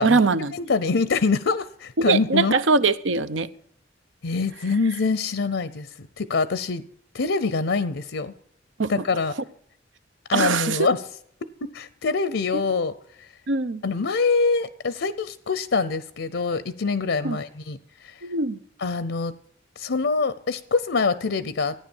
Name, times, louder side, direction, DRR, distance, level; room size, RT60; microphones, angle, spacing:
voice 1, 0.0-0.5 2.0-3.5 8.8-9.0 10.3-10.9 12.5-12.6 13.5-13.8 17.2-17.4 18.2-18.6, right 4 dB, 85° right, 0.8 m, -22 dB
voice 2, 0.6-2.6 4.2-5.9 6.2-6.8 7.1-8.3 8.9-9.3 10.3-11.0 11.7-12.9 13.8-17.8 18.0-18.1 18.8-19.3 19.8-21.7, left 4 dB, 75° left, 0.7 m, -24 dB
14.5 x 9.7 x 7.1 m
head